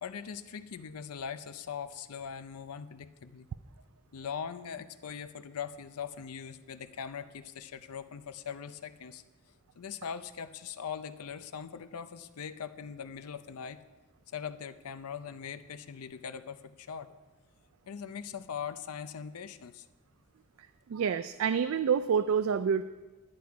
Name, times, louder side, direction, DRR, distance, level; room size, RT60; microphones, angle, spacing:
voice 1, 0.0-3.5 4.1-9.2 9.8-13.8 14.3-17.1 17.9-19.9, left 7 dB, 85° left, 12 dB, 0.5 m, -41 dB
voice 2, 20.9-22.8, right 7 dB, 65° right, 12 dB, 0.3 m, -27 dB
10.5 x 9.5 x 4.6 m, 1.2 s
head